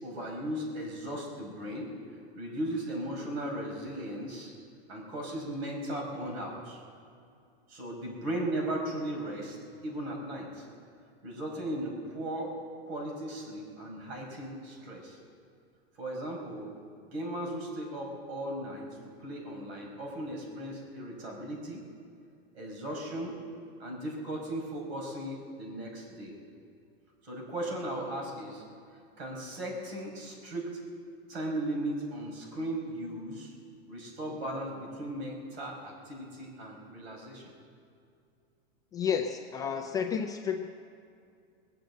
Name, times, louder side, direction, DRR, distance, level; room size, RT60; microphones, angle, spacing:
voice 1, 0.0-4.5 4.9-6.8 7.7-9.6 9.8-10.7 11.2-12.5 12.8-15.2 16.0-16.7 17.0-21.9 22.5-23.4 23.8-26.3 27.2-28.6 29.2-30.8 31.3-33.5 33.9-37.5, right 1 dB, 85° right, 0 dB, 5.2 m, -37 dB
voice 2, 38.9-40.7, left 7 dB, 10° left, 2 dB, 0.4 m, -31 dB
21.0 x 7.8 x 8.0 m, 2.4 s
supercardioid pair, 160°, 31 cm